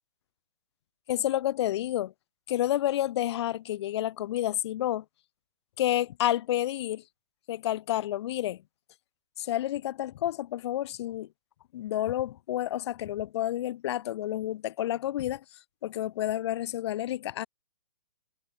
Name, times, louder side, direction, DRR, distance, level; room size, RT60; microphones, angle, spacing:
voice 1, 1.1-2.1 2.5-5.0 5.8-7.0 7.5-8.6 9.4-11.3 11.7-15.4 15.8-17.5, left 13 dB, 45° left, 0.5 m, -30 dB
hypercardioid pair, 145°, 20 cm